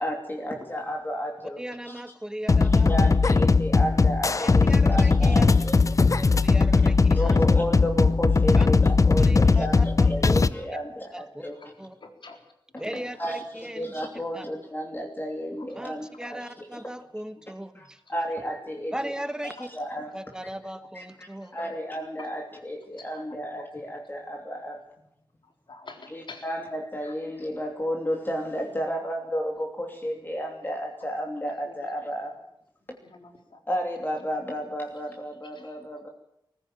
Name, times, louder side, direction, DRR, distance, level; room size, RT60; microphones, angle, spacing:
voice 1, 0.0-1.6 1.9-2.0 2.7-5.8 7.1-11.6 12.9-16.8 17.7-19.1 19.4-20.1 20.9-24.8 26.1-32.3 33.7-36.1, equal, 25° left, 1 dB, 2.9 m, -32 dB
voice 2, 1.6-3.1 4.7-5.4 6.1-7.4 8.5-8.7 9.1-10.4 11.1-11.4 11.8-12.0 12.8-13.9 14.3-14.4 15.7-18.0 18.9-19.7 20.1-21.5, right 1 dB, 10° right, 11 dB, 1.5 m, -37 dB
sound 1, 2.5-10.5, left 4 dB, 40° left, 0.7 m, -19 dB
voice 3, 12.0-12.4 12.8-13.0 16.2-16.3 18.1-18.2 21.4-21.6 23.0-23.1 25.7-26.4 27.0-27.1 31.6-31.7 33.0-33.6 35.6-35.7, left 4 dB, 75° left, 4 dB, 3.9 m, -46 dB
20.0 x 15.5 x 8.9 m, 0.77 s
wide cardioid pair, 105°, 8 cm